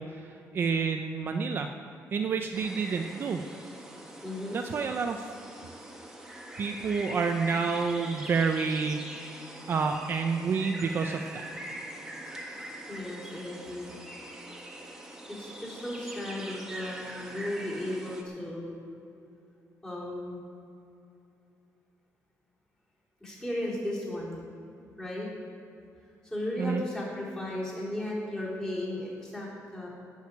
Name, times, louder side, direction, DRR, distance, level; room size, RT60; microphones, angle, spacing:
voice 1, 0.0-1.7 2.1-3.4 4.5-5.3 6.6-9.4 9.7-11.2 26.6-26.8, right 5 dB, 40° right, 4 dB, 0.6 m, -29 dB
sound 1, 2.5-18.2, right 1 dB, 10° right, 1.4 m, -43 dB
voice 2, 4.2-4.6 12.9-13.9 15.3-18.8 19.8-20.4 23.2-24.4 25.0-25.3 26.2-29.9, left 1 dB, 10° left, -7 dB, 3.9 m, -35 dB
17.5 x 6.5 x 8.4 m, 2.7 s
cardioid pair, 175°, 6 cm